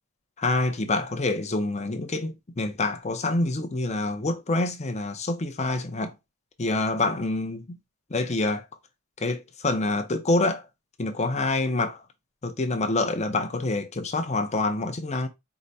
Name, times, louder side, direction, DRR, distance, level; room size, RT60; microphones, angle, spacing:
voice 1, 0.4-6.1 6.6-7.8 8.1-8.6 9.2-10.7 11.0-12.0 12.4-15.3, left 2 dB, 30° left, 0.6 m, -26 dB
4.8 x 2.2 x 4.0 m
head